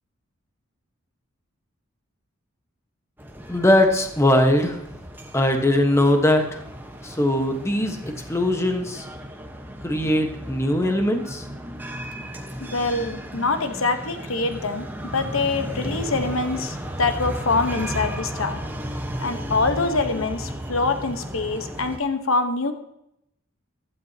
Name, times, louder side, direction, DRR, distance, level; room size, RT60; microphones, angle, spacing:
sound 1, 3.2-22.0, equal, 10° right, 1.1 m, -34 dB
voice 1, 3.5-4.8 5.3-6.6 7.0-9.1 9.8-11.4, left 1 dB, 15° left, 4 dB, 1.2 m, -20 dB
voice 2, 12.6-18.6 19.2-22.7, left 3 dB, 80° left, 8 dB, 1.1 m, -25 dB
15.5 x 12.0 x 2.8 m, 0.80 s
head